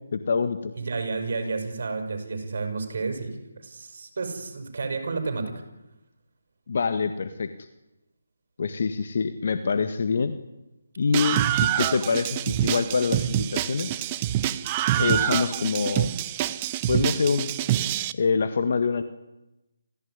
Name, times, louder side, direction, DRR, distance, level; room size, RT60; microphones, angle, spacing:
voice 1, 0.1-0.7 6.7-7.7 8.6-10.3 11.0-14.0 15.0-16.1 16.9-17.5 18.1-19.0, left 5 dB, 50° left, 9 dB, 1.8 m, -25 dB
voice 2, 0.7-5.5, right 4 dB, 55° right, 6 dB, 6.6 m, -31 dB
Screaming, 11.1-18.1, right 13 dB, 20° right, 0.8 m, -26 dB
28.0 x 15.5 x 9.8 m, 0.96 s
hypercardioid pair, 165°, 0 cm